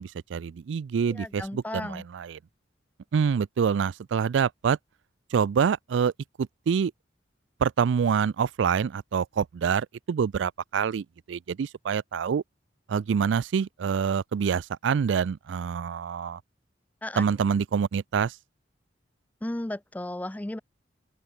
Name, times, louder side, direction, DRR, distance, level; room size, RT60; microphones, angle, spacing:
voice 1, 0.0-2.4 3.1-4.8 5.3-6.1 6.4-6.9 7.6-12.4 12.9-16.4 17.2-18.4, right 6 dB, 75° right, 0.4 m, -26 dB
voice 2, 1.1-2.0 17.0-17.2 19.4-20.6, left 1 dB, 10° left, 0.4 m, -34 dB
open air
head